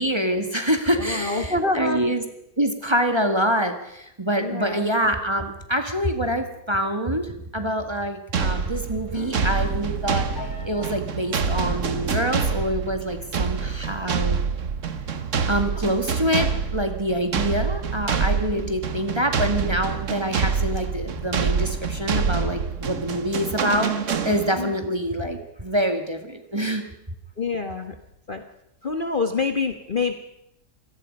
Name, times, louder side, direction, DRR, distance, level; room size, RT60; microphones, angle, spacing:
voice 1, 0.0-2.2 2.6-10.3 10.6-14.4 15.5-23.9 24.2-26.8, equal, 15° right, 5 dB, 1.8 m, -25 dB
voice 2, 1.0-2.0 4.4-4.9 17.6-17.7 18.5-18.7 24.6-24.7 27.4-28.0 28.3-28.4 28.8-30.1, left 3 dB, 35° left, 6 dB, 1.3 m, -26 dB
sound 1, 8.3-24.8, right 6 dB, 50° right, 1.4 m, -26 dB
Piano, 9.1-15.3, left 3 dB, 60° left, 2.7 m, -42 dB
27.0 x 18.0 x 5.4 m, 0.82 s
omnidirectional pair, 1.7 m